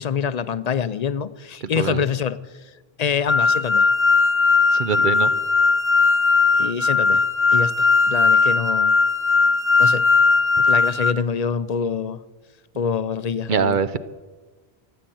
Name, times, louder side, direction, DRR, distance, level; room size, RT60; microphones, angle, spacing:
voice 1, 0.0-2.4 3.0-3.9 6.6-7.2 7.5-8.9 9.8-10.0 10.7-12.2 12.8-13.8, left 6 dB, 50° left, 15 dB, 0.6 m, -25 dB
sound 1, 3.3-11.1, left 4 dB, 15° left, 0.8 m, -18 dB
voice 2, 4.8-5.3 13.5-14.0, right 6 dB, 55° right, 13 dB, 0.7 m, -22 dB
14.5 x 8.7 x 7.8 m, 1.3 s
omnidirectional pair, 1.1 m